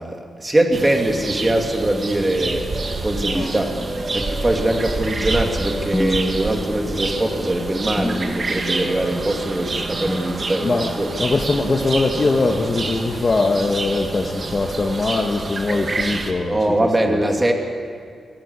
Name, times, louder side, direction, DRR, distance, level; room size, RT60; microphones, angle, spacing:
voice 1, 0.0-11.1 16.5-17.5, right 1 dB, 20° right, 2 dB, 2.9 m, -22 dB
sound 1, 0.7-16.3, right 3 dB, 40° right, 2.2 m, -28 dB
sound 2, 2.7-13.5, right 2 dB, 75° right, 4.1 m, -42 dB
sound 3, 3.3-4.5 5.9-7.1 8.0-8.8 10.1-11.0, equal, 10° left, 1.5 m, -28 dB
voice 2, 11.2-16.6 17.1-17.2, left 3 dB, 40° left, 2 dB, 1.6 m, -21 dB
22.0 x 18.0 x 8.4 m, 2.2 s
cardioid pair, 95°, 0 cm